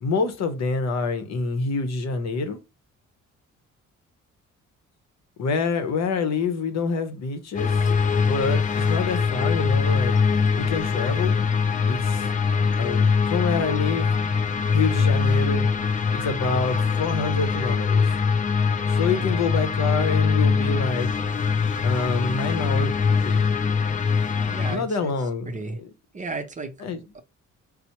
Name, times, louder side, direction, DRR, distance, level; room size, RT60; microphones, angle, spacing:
voice 1, 0.0-2.6 5.4-7.9 8.1-10.2 10.6-11.5 11.9-12.3 12.8-14.1 14.7-15.7 16.1-18.1 18.9-21.1 21.8-22.9 23.2-23.4 24.7-25.5 25.8-25.9 26.8-27.0, left 4 dB, 60° left, 0.8 m, -27 dB
sound 1, 7.5-24.8, left 5 dB, 25° left, 0.3 m, -22 dB
voice 2, 24.5-25.1 25.5-25.8 26.1-26.7 27.1-27.2, right 3 dB, 25° right, 0.6 m, -33 dB
4.2 x 2.0 x 2.9 m
cardioid pair, 90°, 30 cm